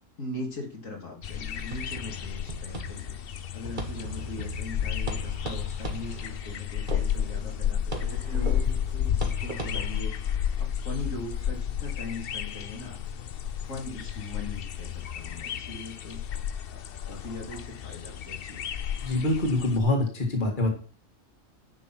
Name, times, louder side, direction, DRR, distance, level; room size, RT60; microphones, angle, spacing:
voice 1, 0.2-3.2 3.5-10.1 10.6-13.0 13.7-16.2 16.7-18.7, left 2 dB, 90° left, 0 dB, 3.3 m, -40 dB
sound 1, 1.2-19.8, left 9 dB, 55° left, 0.8 m, -32 dB
sound 2, 1.7-10.0, right 2 dB, 40° right, 2.0 m, -39 dB
voice 2, 19.0-20.7, left 2 dB, 40° left, 1 dB, 2.3 m, -25 dB
10.5 x 6.1 x 6.0 m, 0.39 s
omnidirectional pair, 1.3 m